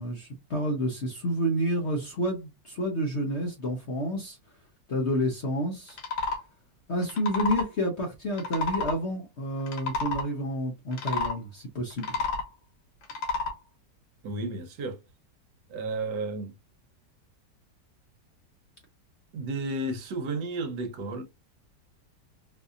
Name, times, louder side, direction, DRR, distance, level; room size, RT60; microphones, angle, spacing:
voice 1, 0.0-4.4 4.9-6.0 6.9-12.2, equal, 50° left, 0.8 m, -29 dB
sound 1, 5.9-6.4 7.0-7.7 8.3-9.0 9.6-10.3 10.9-11.3 11.9-12.5 13.0-13.5, left 4 dB, 90° left, 1.8 m, -30 dB
voice 2, 14.2-15.0 15.7-16.6 19.3-21.2, right 2 dB, 70° right, 1.3 m, -32 dB
4.0 x 2.7 x 2.4 m
omnidirectional pair, 2.0 m